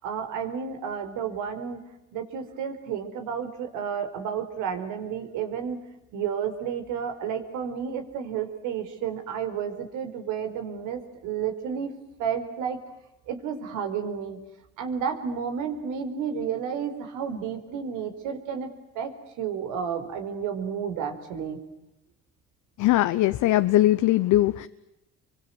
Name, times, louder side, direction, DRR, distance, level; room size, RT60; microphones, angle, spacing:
voice 1, 0.0-1.8 2.1-5.8 6.1-11.9 12.2-12.8 13.3-14.4 14.8-18.7 18.9-21.6, right 7 dB, 85° right, 4.6 m, -31 dB
voice 2, 22.8-24.7, left 15 dB, 75° left, 1.1 m, -20 dB
30.0 x 24.5 x 8.1 m
supercardioid pair, 75°, 30 cm